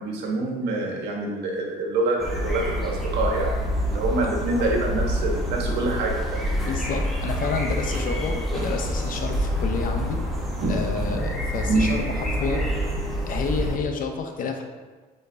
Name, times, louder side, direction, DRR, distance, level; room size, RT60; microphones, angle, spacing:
voice 1, 0.0-6.6 10.6-11.2 11.6-11.9, right 2 dB, 80° right, -1 dB, 1.4 m, -26 dB
sound 1, 2.2-13.8, equal, ahead, 1.3 m, -27 dB
voice 2, 6.7-10.2 10.7-12.7 13.3-14.6, left 5 dB, 55° left, 4 dB, 0.8 m, -29 dB
8.0 x 4.3 x 2.8 m, 1.4 s
cardioid pair, 110°, 17 cm